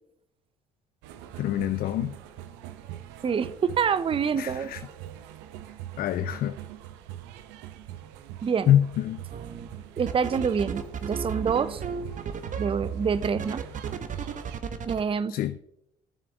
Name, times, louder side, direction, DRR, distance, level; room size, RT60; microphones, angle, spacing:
sound 1, 1.0-14.6, right 12 dB, 80° right, 0.8 m, -43 dB
voice 1, 1.4-2.2 4.4-4.8 6.0-6.6 8.7-9.2 15.3-15.6, left 11 dB, 55° left, 0.5 m, -25 dB
voice 2, 3.2-4.7 8.4-8.7 10.0-11.8 12.6-13.6 14.9-15.4, right 6 dB, 30° right, 0.6 m, -26 dB
sound 2, 9.3-9.7 10.1-15.0, right 6 dB, 45° right, 1.1 m, -34 dB
15.0 x 6.9 x 3.5 m
hypercardioid pair, 60°, 18 cm